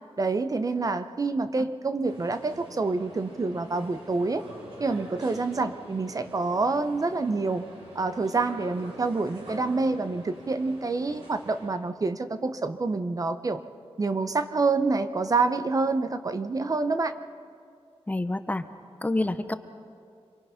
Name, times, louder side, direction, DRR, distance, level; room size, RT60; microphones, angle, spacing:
voice 1, 0.2-4.4 4.8-7.6 7.9-13.6 14.0-17.1, right 3 dB, 35° right, 10 dB, 0.7 m, -27 dB
sound 1, 2.1-11.7, right 1 dB, 65° right, 6.8 m, -45 dB
voice 2, 18.1-18.6 19.0-19.5, left 2 dB, 15° left, 10 dB, 0.7 m, -28 dB
27.0 x 23.0 x 5.7 m, 2.4 s
wide cardioid pair, 165°, 11 cm